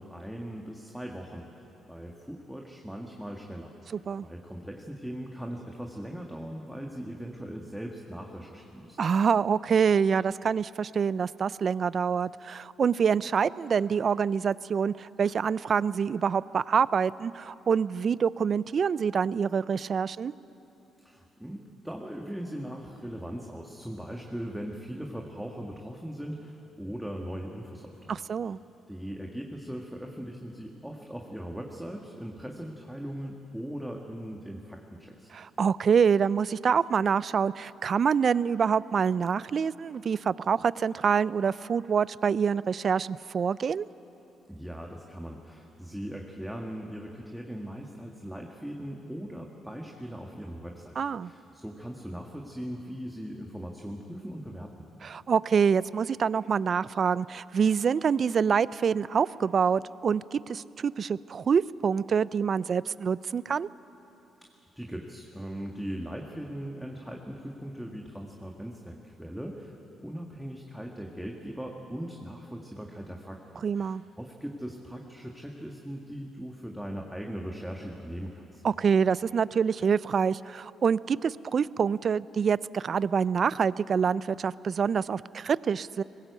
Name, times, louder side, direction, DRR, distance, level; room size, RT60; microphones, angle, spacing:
voice 1, 0.0-9.0 21.0-28.2 28.4-28.5 28.9-35.3 44.5-54.8 64.7-69.8 70.0-78.6, equal, 5° right, 1 dB, 1.7 m, -39 dB
voice 2, 9.0-20.3 28.1-28.6 35.3-43.9 51.0-51.3 55.0-63.7 73.6-74.0 78.6-86.0, right 6 dB, 50° right, 19 dB, 0.4 m, -26 dB
20.5 x 17.0 x 8.3 m, 3.0 s
cardioid pair, 90°, 0 cm